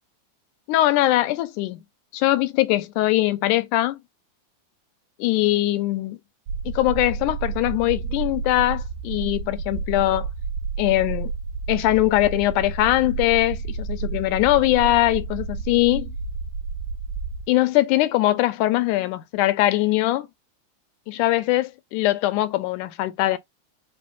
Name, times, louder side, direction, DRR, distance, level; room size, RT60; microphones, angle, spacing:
voice 1, 0.7-1.8 2.1-4.0 5.2-6.2 6.7-10.3 10.8-11.3 11.7-16.1 17.5-20.3 21.1-23.4, left 16 dB, 85° left, 2.1 m, -21 dB
sound 1, 6.5-17.5, right 4 dB, 80° right, 1.3 m, -31 dB
5.6 x 3.2 x 2.5 m
omnidirectional pair, 3.5 m